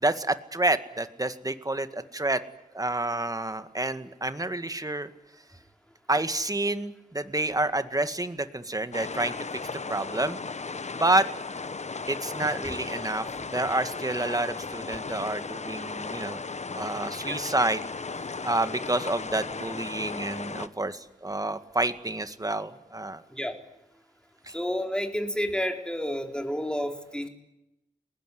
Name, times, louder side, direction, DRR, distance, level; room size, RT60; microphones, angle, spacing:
voice 1, 0.0-2.4 2.7-5.1 6.1-9.3 9.9-10.4 10.9-11.3 12.1-16.4 16.7-17.9 18.4-23.2, right 2 dB, 20° right, 10 dB, 2.0 m, -28 dB
sound 1, 8.9-20.7, left 4 dB, 45° left, 1.1 m, -36 dB
voice 2, 24.5-27.3, equal, 5° left, 4 dB, 4.4 m, -30 dB
29.5 x 20.0 x 9.5 m, 0.90 s
cardioid pair, 50°, 16 cm